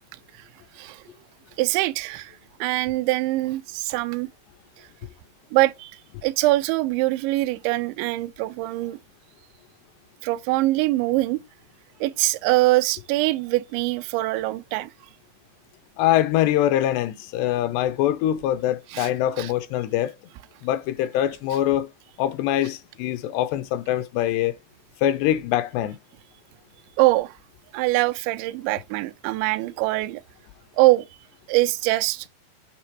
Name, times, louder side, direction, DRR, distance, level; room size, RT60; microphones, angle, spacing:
voice 1, 1.6-2.3 2.6-4.3 5.5-5.9 6.2-9.0 10.2-11.4 12.0-14.9 18.9-19.1 19.4-19.5 27.0-27.3 27.7-30.2 30.8-31.1 31.5-32.3, right 19 dB, 85° right, 2.9 m, -23 dB
voice 2, 16.0-20.1 20.6-21.9 22.2-24.6 25.0-26.0, left 12 dB, 80° left, 2.6 m, -23 dB
9.2 x 3.6 x 4.6 m
omnidirectional pair, 5.1 m